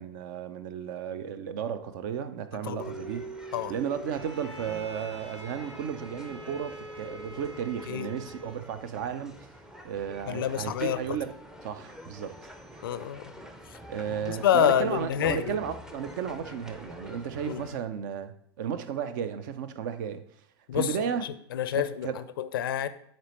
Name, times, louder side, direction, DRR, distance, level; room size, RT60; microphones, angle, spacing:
voice 1, 0.0-3.2 3.7-9.4 9.8-11.4 11.6-12.4 13.9-20.2 20.7-21.3 21.7-22.2, right 8 dB, 45° right, 0.5 m, -34 dB
sound 1, 2.8-17.8, right 1 dB, 5° right, 0.6 m, -46 dB
Bowed string instrument, 4.1-8.7, equal, 90° right, 0.7 m, -45 dB
voice 2, 10.3-11.0 12.8-13.2 14.4-15.6 17.5-17.6 20.7-21.0 21.2-22.9, left 10 dB, 55° left, 0.5 m, -27 dB
10.0 x 4.2 x 3.1 m
figure-of-eight pair, 90°, 14 cm